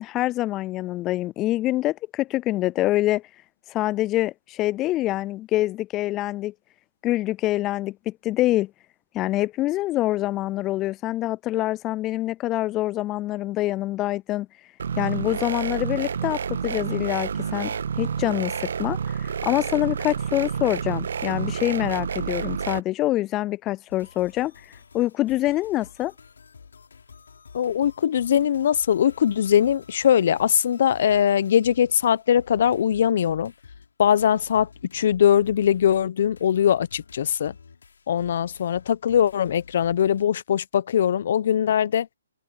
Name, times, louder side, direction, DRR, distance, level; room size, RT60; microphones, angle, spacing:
voice 1, 0.0-3.2 3.7-6.5 7.0-8.7 9.1-14.5 15.0-24.5 24.9-26.1, left 16 dB, 20° left, 0.3 m, -25 dB
sound 1, 14.8-22.8, right 7 dB, 65° right, 1.5 m, -29 dB
sound 2, 23.9-40.3, left 5 dB, 70° left, 5.8 m, -50 dB
voice 2, 27.5-33.5 34.0-37.5 38.1-42.1, left 9 dB, 55° left, 1.0 m, -21 dB
figure-of-eight pair, 140°, 0 cm